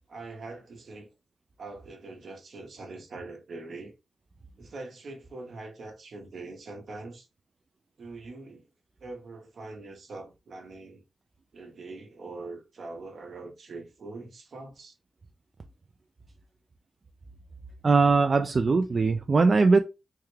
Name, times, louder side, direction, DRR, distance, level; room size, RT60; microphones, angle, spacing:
voice 1, 0.1-1.1 1.6-3.9 4.6-7.3 8.0-8.6 9.0-11.0 11.5-15.0, right 3 dB, 70° right, 0.9 m, -43 dB
voice 2, 17.8-19.8, right 4 dB, 50° right, 0.3 m, -21 dB
3.5 x 2.2 x 3.2 m
cardioid pair, 75°, 0 cm